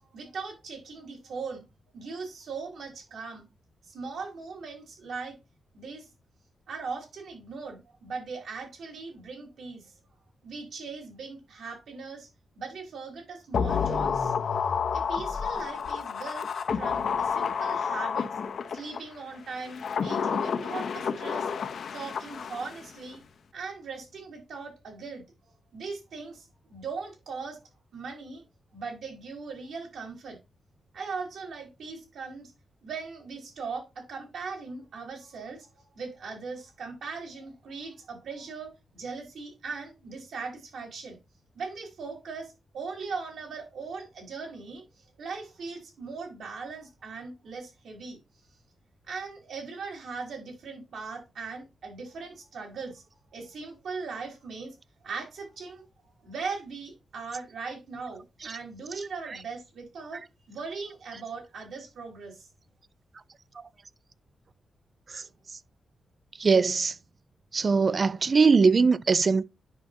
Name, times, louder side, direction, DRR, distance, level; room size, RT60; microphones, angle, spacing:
voice 1, 0.1-1.6 1.9-3.5 3.9-5.3 5.7-6.1 6.7-9.9 10.4-12.3 12.6-14.3 14.9-16.5 16.7-18.3 18.7-21.5 21.9-23.2 23.5-25.2 25.7-27.6 27.9-28.4 28.7-30.4 30.9-32.5 32.8-41.2 41.5-44.9 45.2-48.2 49.1-53.0 53.3-54.8 55.0-55.8 56.2-60.2 60.5-62.5, right 4 dB, 75° right, 4.1 m, -39 dB
sound 1, 13.5-19.0 19.6-22.9 23.1-23.2, left 6 dB, 55° left, 0.7 m, -30 dB
voice 2, 66.4-66.9 67.5-69.4, right 4 dB, 35° right, 0.4 m, -21 dB
9.7 x 5.8 x 2.7 m
wide cardioid pair, 160°, 0 cm